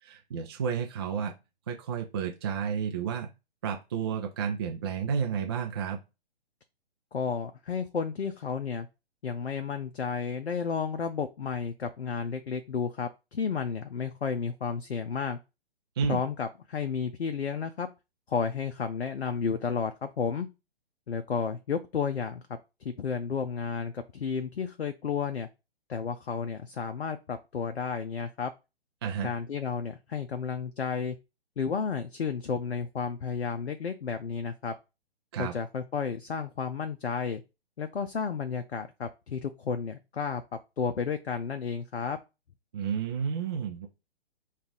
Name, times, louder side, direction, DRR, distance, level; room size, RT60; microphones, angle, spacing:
voice 1, 0.0-1.3 1.7-3.3 3.6-6.0 16.0-16.2 29.0-29.3 35.3-35.5 42.7-43.9, right 7 dB, 25° right, 2 dB, 0.4 m, -31 dB
voice 2, 7.1-8.9 9.2-15.4 16.1-17.9 18.3-20.5 21.1-25.5 25.9-28.5 29.2-31.2 31.6-34.7 35.4-37.4 37.8-40.4 40.8-42.2, left 6 dB, 85° left, 7 dB, 0.6 m, -32 dB
5.2 x 2.4 x 3.6 m, 0.27 s
figure-of-eight pair, 130°, 31 cm